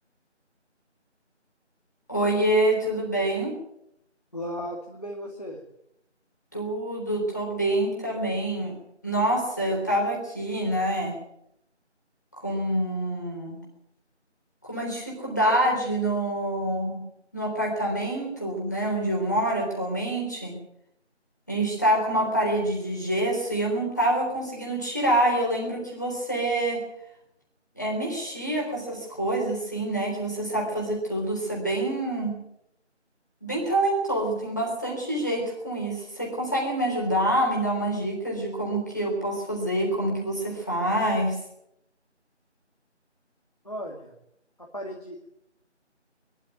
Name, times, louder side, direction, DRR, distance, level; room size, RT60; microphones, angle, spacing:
voice 1, 2.1-3.5 6.5-8.7 9.0-11.1 12.4-13.6 14.6-17.0 17.3-20.6 21.5-26.8 27.8-32.3 33.4-41.4, right 1 dB, 15° left, -3 dB, 3.6 m, -26 dB
voice 2, 4.3-5.6 19.2-19.4 43.6-44.1 44.6-45.3, equal, 35° left, 0 dB, 2.4 m, -36 dB
22.0 x 12.5 x 9.3 m, 0.78 s
figure-of-eight pair, 180°, 36 cm